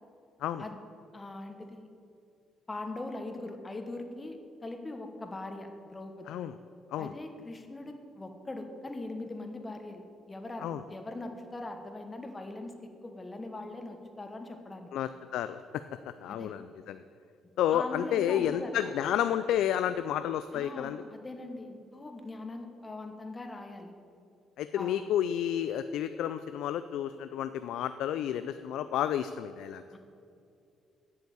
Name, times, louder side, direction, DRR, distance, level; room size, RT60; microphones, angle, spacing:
voice 1, 1.1-1.9 2.7-4.4 4.6-6.3 7.0-14.9 16.3-16.5 17.7-18.9 20.5-23.9 24.8-25.0 29.9-30.0, left 2 dB, 20° left, 5 dB, 1.2 m, -41 dB
voice 2, 14.9-15.6 16.2-17.0 17.6-21.0 24.6-29.8, left 10 dB, 75° left, 11 dB, 0.3 m, -31 dB
8.4 x 6.9 x 8.2 m, 2.6 s
cardioid pair, 85°, 0 cm